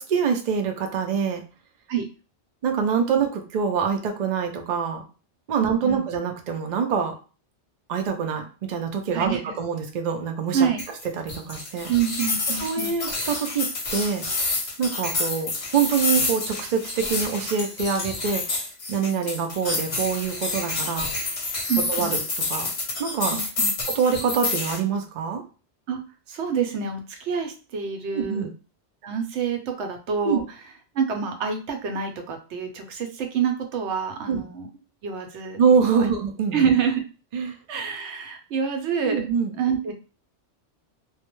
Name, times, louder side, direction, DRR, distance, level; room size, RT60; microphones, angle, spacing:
voice 1, 0.1-1.4 2.6-5.0 5.5-7.1 7.9-10.7 11.2-11.9 12.6-14.2 14.8-18.6 18.9-21.1 21.9-22.2 22.5-22.7 23.0-23.4 23.9-25.4 28.1-28.5 30.2-30.4 34.3-34.4 35.6-36.7 37.3-37.6 39.0-39.5, right 6 dB, 60° right, 4 dB, 0.4 m, -25 dB
voice 2, 5.6-6.0 9.1-9.5 10.5-10.8 11.9-12.9 21.7-22.1 23.3-23.7 25.9-26.0 26.3-28.5 29.0-30.4 30.9-34.7 35.0-35.6 35.9-36.1 36.5-37.0 37.7-39.3 39.6-39.9, right 7 dB, 80° right, 5 dB, 0.9 m, -27 dB
sound 1, 10.8-24.8, left 3 dB, 45° left, 0.7 m, -28 dB
2.2 x 2.1 x 2.9 m, 0.35 s
omnidirectional pair, 1.2 m